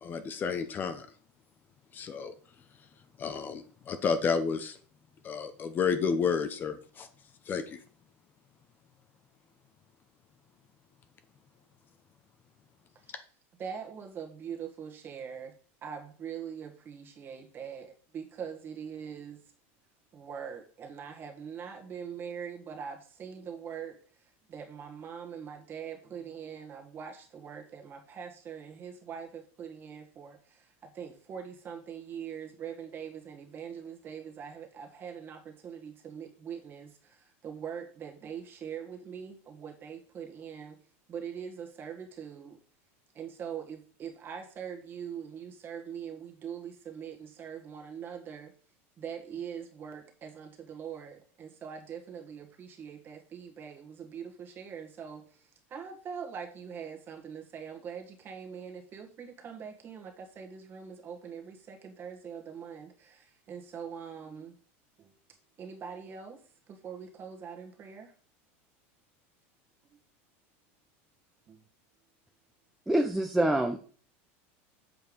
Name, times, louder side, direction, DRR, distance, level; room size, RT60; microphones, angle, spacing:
voice 1, 0.0-1.1 1.9-2.3 3.2-4.8 5.2-7.1 7.5-7.8, left 6 dB, 30° left, 9 dB, 0.8 m, -31 dB
voice 2, 13.6-15.5 15.8-19.4 20.1-40.8 41.1-42.6 43.1-48.5 49.0-64.5 65.0-65.1 65.6-66.4 66.7-68.1 69.9-70.0 71.5-71.6, right 7 dB, 30° right, 2 dB, 1.8 m, -42 dB
voice 3, 72.9-73.8, right 1 dB, 5° right, 4 dB, 0.7 m, -26 dB
7.9 x 4.6 x 5.3 m, 0.43 s
supercardioid pair, 140°, 7 cm